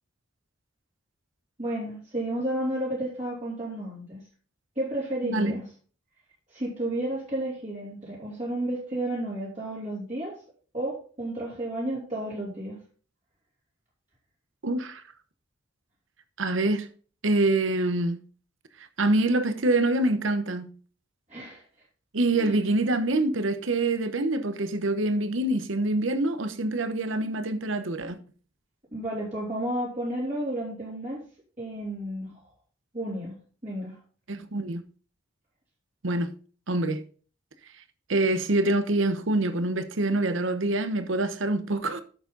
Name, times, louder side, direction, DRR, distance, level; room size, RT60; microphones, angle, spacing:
voice 1, 1.6-4.2 4.7-5.6 6.5-10.4 10.7-12.8 21.3-21.6 22.3-22.6 28.9-31.2 31.6-32.4 32.9-33.3 33.6-34.0, right 1 dB, 35° right, 3.0 m, -32 dB
voice 2, 5.2-5.6 14.6-15.0 16.4-16.9 17.2-18.2 19.0-20.7 22.1-28.2 34.3-34.8 36.0-36.3 36.7-37.0 38.1-42.0, right 2 dB, 70° right, 0.9 m, -25 dB
9.2 x 7.1 x 3.9 m
head